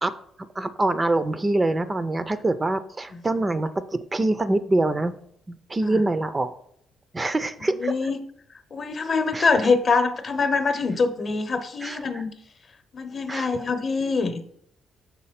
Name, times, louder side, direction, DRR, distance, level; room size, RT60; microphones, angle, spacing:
voice 1, 0.6-5.1 5.5-6.5 7.1-7.9 9.3-9.5 11.8-12.2 13.3-13.6, right 2 dB, 25° right, 12 dB, 0.4 m, -25 dB
voice 2, 7.7-8.2 8.7-12.3 12.9-14.4, left 4 dB, 45° left, 9 dB, 0.8 m, -24 dB
6.2 x 4.3 x 5.7 m, 0.69 s
cardioid pair, 90°, 0 cm